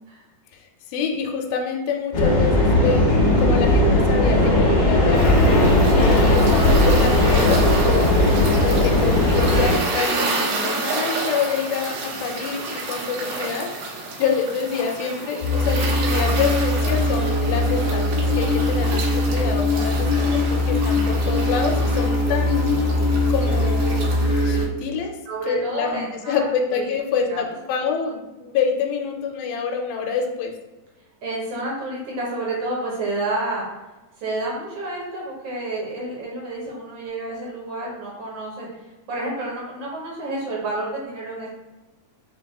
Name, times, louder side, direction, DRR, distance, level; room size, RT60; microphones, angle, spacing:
voice 1, 0.5-5.3 5.9-13.7 14.2-22.6 23.3-24.1 24.4-25.1 25.4-30.5, left 6 dB, 90° left, 2 dB, 2.5 m, -27 dB
sound 1, 2.1-9.8, left 1 dB, 50° left, 1.9 m, -17 dB
sound 2, 5.1-24.7, right 2 dB, 85° right, 2.8 m, -30 dB
sound 3, 15.4-24.6, left 2 dB, 75° left, 2.3 m, -21 dB
voice 2, 24.5-24.9 25.3-26.5 26.8-26.9 27.3-27.4 31.2-33.6 34.2-38.7 39.1-41.5, right 2 dB, 70° right, -4 dB, 1.6 m, -29 dB
6.0 x 2.3 x 3.5 m, 1.1 s
omnidirectional pair, 4.2 m